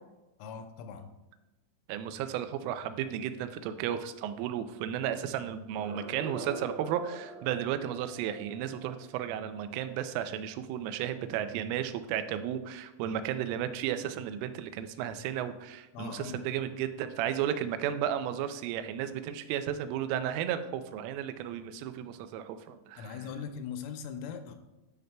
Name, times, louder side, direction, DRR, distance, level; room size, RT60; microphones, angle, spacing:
voice 1, 0.4-1.1 15.9-16.4 23.0-24.6, left 7 dB, 90° left, 7 dB, 3.2 m, -40 dB
voice 2, 1.9-23.2, right 10 dB, 85° right, 10 dB, 3.1 m, -34 dB
sound 1, 5.6-10.6, right 2 dB, 60° right, 3.5 m, -45 dB
10.5 x 6.5 x 2.2 m, 1.0 s
omnidirectional pair, 5.7 m